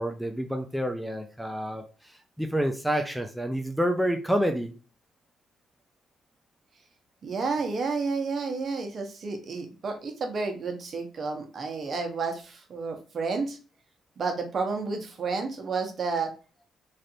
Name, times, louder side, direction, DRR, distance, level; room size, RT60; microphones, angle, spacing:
voice 1, 0.0-4.7, equal, ahead, 4 dB, 0.5 m, -28 dB
voice 2, 7.2-13.6 14.2-16.3, right 4 dB, 50° right, 4 dB, 0.9 m, -31 dB
3.2 x 2.5 x 2.7 m, 0.36 s
cardioid pair, 90°, 0 cm